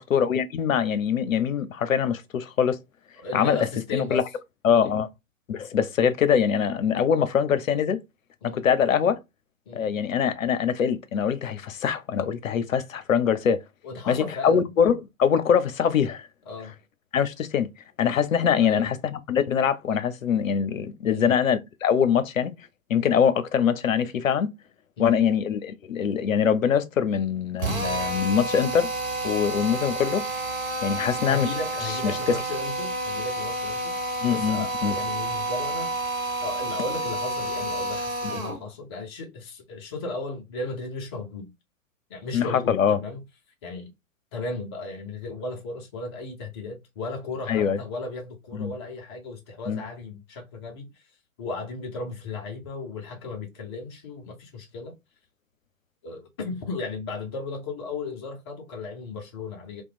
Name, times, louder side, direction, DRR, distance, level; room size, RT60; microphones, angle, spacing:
voice 1, 0.0-2.8 3.3-4.2 4.6-5.1 5.5-8.0 8.4-9.2 9.7-13.6 14.1-16.3 17.1-17.7 18.0-22.5 22.9-24.5 25.0-28.9 29.2-30.2 30.8-31.5 32.0-32.4 34.2-34.9 38.2-38.4 42.3-43.0 47.5-47.8 48.5-48.7 49.7-49.8, left 7 dB, 75° left, 0.5 m, -23 dB
voice 2, 3.2-4.2 4.7-4.9 8.4-8.7 9.7-9.9 13.8-14.7 16.5-16.7 18.6-18.9 21.1-21.3 25.0-25.2 31.3-35.9 36.4-41.5 42.1-43.2 43.6-43.9 44.3-51.0 51.4-54.9 56.0-59.8, left 3 dB, 20° left, 0.4 m, -35 dB
Drill, 27.6-38.6, right 2 dB, 80° right, 1.1 m, -30 dB
2.9 x 2.1 x 2.3 m
figure-of-eight pair, 110°, 40 cm